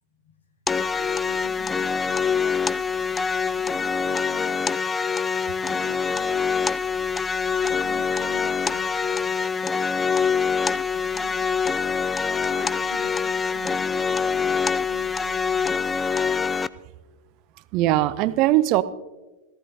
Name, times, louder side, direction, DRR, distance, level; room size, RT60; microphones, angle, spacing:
voice 1, 0.1-5.1 5.6-6.8 7.2-11.5 11.9-12.0 12.5-15.8, left 3 dB, 70° left, 3 dB, 2.2 m, -47 dB
sound 1, 0.7-16.7, left 5 dB, 15° left, 0.3 m, -24 dB
voice 2, 17.7-18.8, right 15 dB, 40° right, 16 dB, 0.5 m, -20 dB
17.5 x 14.5 x 2.8 m, 1.1 s
figure-of-eight pair, 90°, 0 cm